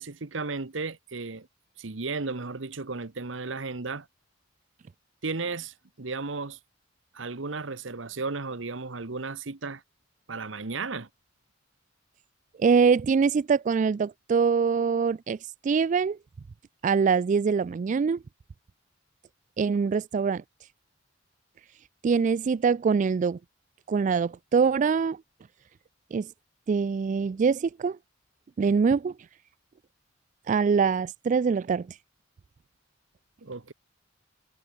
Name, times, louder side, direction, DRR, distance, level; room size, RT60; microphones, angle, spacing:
voice 1, 0.0-1.5 1.8-4.1 5.2-6.6 7.1-9.8 10.3-11.1 33.4-33.7, right 4 dB, 75° right, 1.2 m, -34 dB
voice 2, 12.6-16.2 16.8-18.2 19.6-20.4 22.0-23.4 23.9-25.2 26.1-26.3 26.7-28.0 28.6-29.1 30.5-32.0, right 5 dB, 40° right, 0.3 m, -24 dB
head